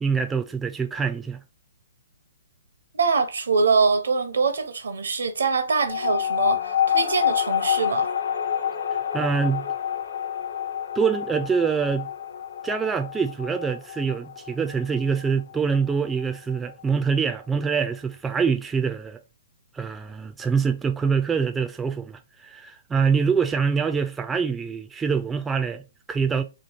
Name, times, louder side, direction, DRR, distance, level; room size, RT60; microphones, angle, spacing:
voice 1, 0.0-1.4 9.1-9.7 11.0-12.1 12.6-19.2 19.7-26.4, right 6 dB, 10° right, 0.3 m, -25 dB
voice 2, 2.9-8.1, right 4 dB, 85° right, 0.8 m, -23 dB
sound 1, 5.9-16.8, left 9 dB, 70° left, 0.6 m, -28 dB
3.0 x 2.3 x 4.3 m
hypercardioid pair, 135°, 0 cm